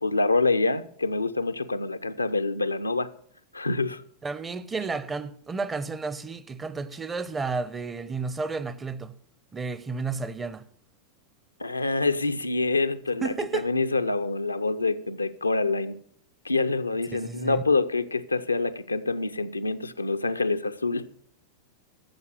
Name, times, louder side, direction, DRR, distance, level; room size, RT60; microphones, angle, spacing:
voice 1, 0.0-3.1 3.5-4.0 11.6-16.0 16.4-21.1, left 3 dB, 80° left, 0.6 m, -26 dB
voice 2, 4.2-9.2 9.5-10.7 13.2-13.7 17.1-17.6, right 4 dB, 15° right, 0.7 m, -32 dB
13.0 x 7.1 x 6.5 m
figure-of-eight pair, 90°, 0 cm